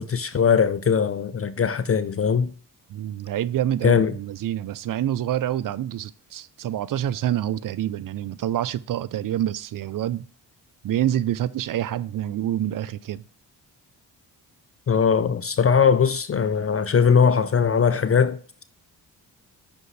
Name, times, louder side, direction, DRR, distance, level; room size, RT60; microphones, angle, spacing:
voice 1, 0.0-2.5 3.8-4.1 14.9-18.6, left 6 dB, 35° left, 0.5 m, -20 dB
voice 2, 2.9-10.3 10.8-13.2, right 11 dB, 50° right, 0.5 m, -27 dB
5.9 x 5.3 x 3.2 m
supercardioid pair, 50°, 43 cm